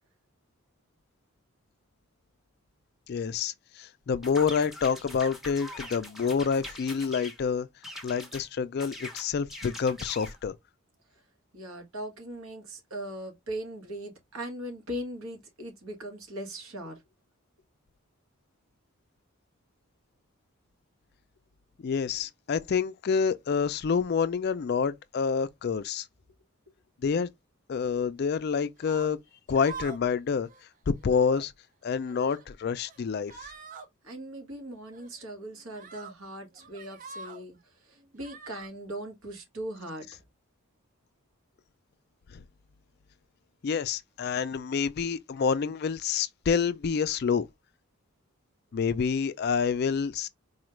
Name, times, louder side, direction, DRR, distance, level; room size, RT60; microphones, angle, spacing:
voice 1, 3.1-7.7 8.0-10.5 21.8-26.1 27.0-27.3 27.7-29.2 29.5-30.5 30.9-31.5 31.8-33.5 42.3-42.4 43.6-47.5 48.7-50.3, left 6 dB, 50° left, 0.3 m, -28 dB
sound 1, 4.2-7.4 7.8-8.4 8.8-10.4, left 1 dB, ahead, 0.7 m, -43 dB
voice 2, 11.5-17.0 34.0-40.2, right 1 dB, 75° right, 1.5 m, -39 dB
sound 2, 28.8-29.1 29.5-30.1 30.4-30.6 31.0-31.4 32.0-32.4 32.8-33.0 33.3-33.9 34.9-35.1 35.7-36.1 36.5-37.4 38.2-38.7, right 5 dB, 40° right, 0.5 m, -45 dB
4.2 x 2.4 x 3.0 m
head